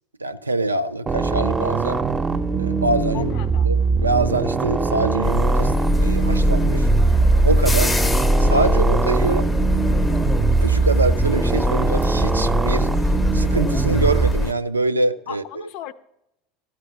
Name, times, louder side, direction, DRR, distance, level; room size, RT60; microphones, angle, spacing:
voice 1, 0.2-2.0 2.6-3.3 3.6-6.9 7.4-7.9 8.4-9.5 10.6-12.9 13.3-15.7, right 2 dB, 85° right, 0.4 m, -24 dB
sound 1, 1.1-14.3, right 5 dB, 25° right, 0.7 m, -22 dB
voice 2, 3.1-3.7 15.3-15.9, left 11 dB, 55° left, 0.5 m, -35 dB
sound 2, 5.2-14.5, left 1 dB, 15° left, 0.6 m, -21 dB
14.0 x 4.9 x 6.8 m
figure-of-eight pair, 75°, 0 cm